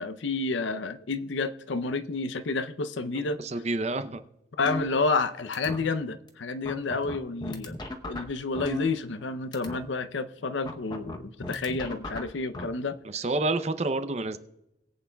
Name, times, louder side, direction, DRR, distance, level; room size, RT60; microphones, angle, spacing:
voice 1, 0.0-3.4 4.6-7.8 8.1-13.0, left 3 dB, 80° left, 0.6 m, -30 dB
voice 2, 3.4-4.2 13.0-14.4, right 2 dB, 35° right, 0.6 m, -28 dB
sound 1, 4.7-5.3 5.5-5.8 6.3-6.4 6.7-9.3 9.5-9.8 10.7-12.6, left 1 dB, 20° left, 0.8 m, -36 dB
21.5 x 8.5 x 2.3 m
head